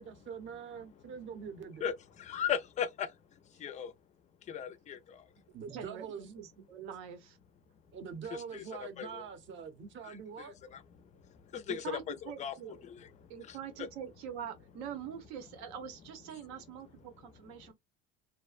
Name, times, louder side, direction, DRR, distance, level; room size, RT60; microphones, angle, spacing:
voice 1, 0.0-1.9 5.5-6.3 7.9-10.6, right 6 dB, 40° right, 0.7 m, -44 dB
voice 2, 1.8-3.9 4.4-5.3 8.3-8.6 9.0-9.3 10.0-13.6 17.6-17.7, left 8 dB, 25° left, 0.3 m, -39 dB
voice 3, 5.7-7.4 11.7-12.8 13.3-17.7, right 8 dB, 90° right, 0.9 m, -44 dB
2.5 x 2.1 x 2.4 m
cardioid pair, 125°, 31 cm